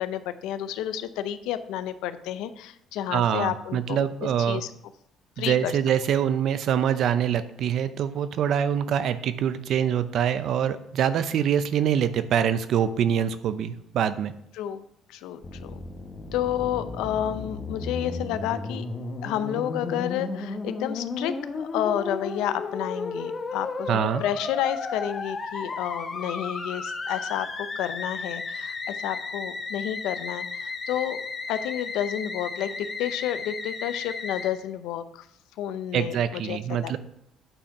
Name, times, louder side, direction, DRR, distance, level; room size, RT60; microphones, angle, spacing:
voice 1, 0.0-4.7 5.4-5.7 14.5-14.8 15.1-15.8 16.3-18.8 19.2-31.2 31.5-35.3 35.6-37.0, left 11 dB, 85° left, 11 dB, 0.6 m, -30 dB
voice 2, 3.1-4.6 5.4-14.3 23.9-24.2 35.9-37.0, right 9 dB, 65° right, 13 dB, 0.6 m, -25 dB
Musical instrument, 15.4-34.5, left 4 dB, 35° left, 1.2 m, -34 dB
8.9 x 4.3 x 5.0 m, 0.74 s
cardioid pair, 110°, 0 cm